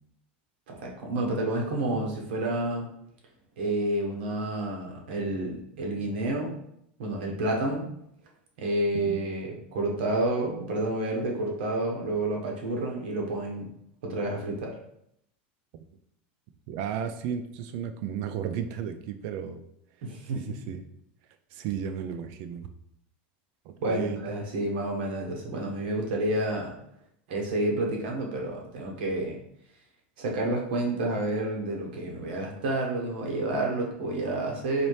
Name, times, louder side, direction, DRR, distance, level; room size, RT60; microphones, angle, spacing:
voice 1, 0.7-2.9 3.6-6.5 7.0-7.9 8.6-13.7 14.0-14.7 20.0-20.4 23.8-26.7 27.3-29.4 30.2-34.9, right 2 dB, 80° right, 0 dB, 1.1 m, -29 dB
voice 2, 16.7-19.6 20.3-20.8 21.5-22.7 23.7-24.2, right 8 dB, 45° right, 9 dB, 0.3 m, -34 dB
4.1 x 2.7 x 3.2 m, 0.74 s
supercardioid pair, 170°, 6 cm